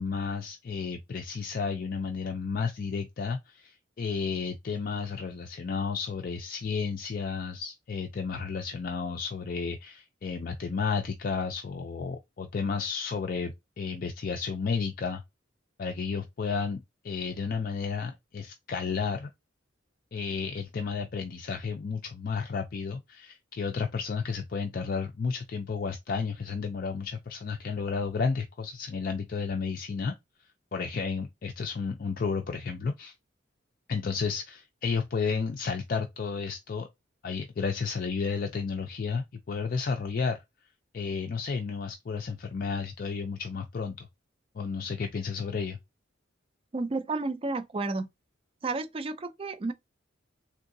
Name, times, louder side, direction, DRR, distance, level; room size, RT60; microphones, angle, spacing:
voice 1, 0.0-15.2 15.8-19.3 20.1-30.1 30.7-33.1 33.9-36.9 37.2-40.4 40.9-44.1 44.5-45.8, left 5 dB, 50° left, 0.4 m, -32 dB
voice 2, 46.7-48.1 48.6-49.7, right 3 dB, 30° right, 0.4 m, -31 dB
3.6 x 2.7 x 2.6 m
head